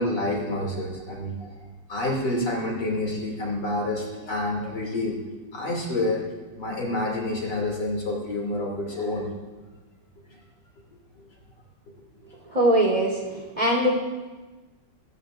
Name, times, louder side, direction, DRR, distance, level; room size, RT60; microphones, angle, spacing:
voice 1, 0.0-1.5 1.9-5.2 5.5-6.2 6.6-9.5 10.3-10.4, left 1 dB, 60° left, -2 dB, 3.5 m, -28 dB
voice 2, 12.5-14.0, right 1 dB, 20° right, -1 dB, 3.6 m, -22 dB
25.5 x 14.5 x 2.6 m, 1.3 s
omnidirectional pair, 2.1 m